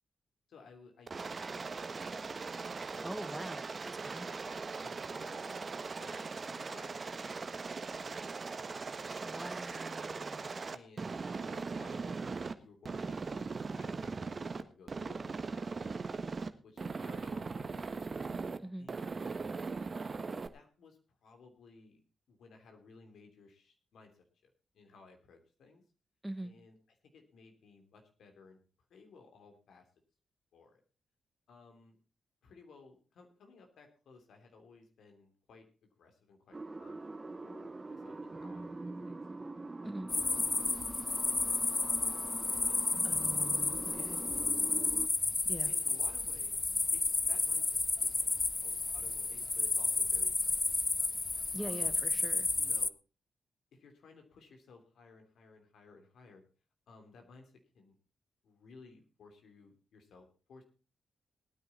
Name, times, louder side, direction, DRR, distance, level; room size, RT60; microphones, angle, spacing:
voice 1, 0.5-2.0 2.9-3.5 4.8-5.7 6.0-7.6 10.7-15.9 16.6-17.9 18.8-19.5 20.1-22.0 22.3-25.8 26.4-28.6 28.9-29.9 30.5-30.8 31.5-32.0 32.4-37.1 37.4-39.2 39.8-44.5 45.6-46.6 46.9-47.7 47.9-50.6 51.6-52.0 52.6-52.9 53.7-56.4 56.9-57.9 58.4-60.6, left 4 dB, 75° left, 4 dB, 3.1 m, -58 dB
Aircraft, 1.1-12.5 12.9-14.6 14.9-16.5 16.8-18.6 18.9-20.5, right 4 dB, 50° right, 1.3 m, -39 dB
voice 2, 3.0-4.3 9.1-10.5 18.6-18.9 26.2-26.5 39.8-40.1 43.0-44.2 45.4-45.7 51.5-52.5, right 1 dB, 10° right, 11 dB, 1.5 m, -43 dB
sound 1, 36.5-45.1, right 3 dB, 30° right, 1.2 m, -44 dB
sound 2, 40.1-52.9, left 3 dB, 35° left, 0.6 m, -32 dB
19.0 x 9.6 x 4.2 m, 0.35 s
supercardioid pair, 45°, 0 cm